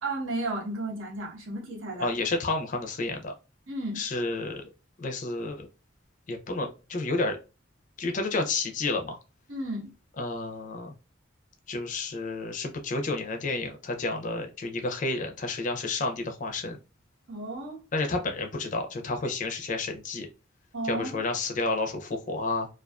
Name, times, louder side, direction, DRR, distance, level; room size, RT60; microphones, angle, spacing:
voice 1, 0.0-2.1 3.7-4.0 9.5-9.9 17.3-17.8 20.7-21.2, right 2 dB, 75° right, 0.9 m, -33 dB
voice 2, 2.0-3.3 4.0-4.6 5.0-5.7 6.3-7.4 8.0-9.2 10.2-10.9 11.7-16.8 17.9-20.3 20.8-22.7, left 3 dB, 40° left, 0.4 m, -30 dB
2.3 x 2.3 x 2.3 m
head